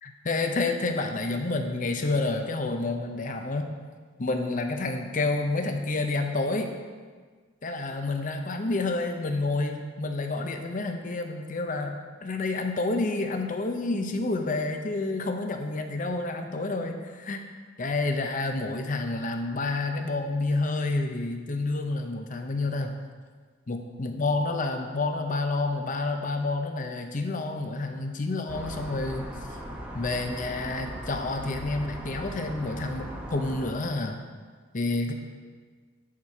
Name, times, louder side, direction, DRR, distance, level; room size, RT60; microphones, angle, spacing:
voice 1, 0.0-3.7 4.2-6.7 7.6-17.5 17.8-23.0 23.7-29.3 29.9-34.2 34.7-35.1, left 2 dB, 40° left, 5 dB, 0.6 m, -29 dB
sound 1, 28.5-33.7, equal, 5° right, 0.9 m, -39 dB
10.0 x 4.3 x 4.7 m, 1.5 s
head